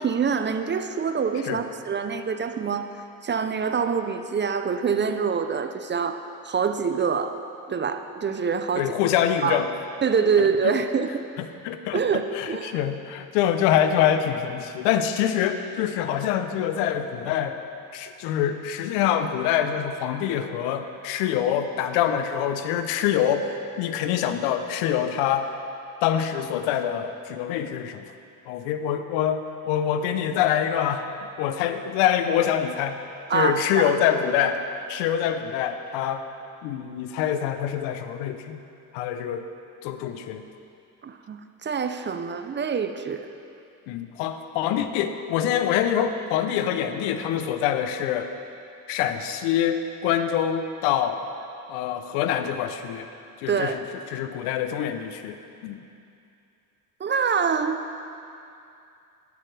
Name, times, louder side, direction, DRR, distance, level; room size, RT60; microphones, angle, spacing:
voice 1, 0.0-2.9 3.2-7.4 7.7-8.9 9.4-9.6 10.0-11.2 11.9-12.8 33.3-33.9 41.0-43.3 53.5-53.8 57.0-57.8, right 6 dB, 25° right, 8 dB, 0.5 m, -25 dB
voice 2, 8.8-9.7 11.4-12.0 12.3-17.6 17.9-25.5 26.0-28.0 28.5-31.0 31.4-33.0 33.3-34.6 34.9-36.2 36.6-38.6 38.9-39.5 39.8-40.5 43.9-48.3 48.9-51.2 51.7-53.1 53.4-53.8 54.1-55.4 55.6-55.8, left 9 dB, 80° left, 9 dB, 0.8 m, -25 dB
11.5 x 11.0 x 3.3 m, 2.6 s
supercardioid pair, 75°, 43 cm